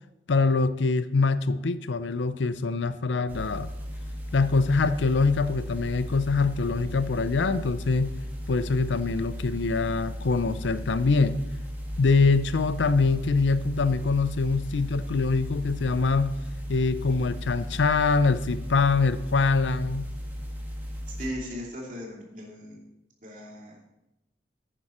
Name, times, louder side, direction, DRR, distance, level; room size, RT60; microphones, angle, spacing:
voice 1, 0.3-3.7 4.3-8.1 8.5-11.4 12.0-16.3 16.7-20.1, left 4 dB, 85° left, 14 dB, 0.5 m, -24 dB
sound 1, 3.3-21.3, equal, 10° right, 1.9 m, -36 dB
voice 2, 21.1-22.8 23.2-23.9, equal, 45° right, -2 dB, 2.7 m, -38 dB
11.0 x 9.1 x 4.3 m, 0.94 s
head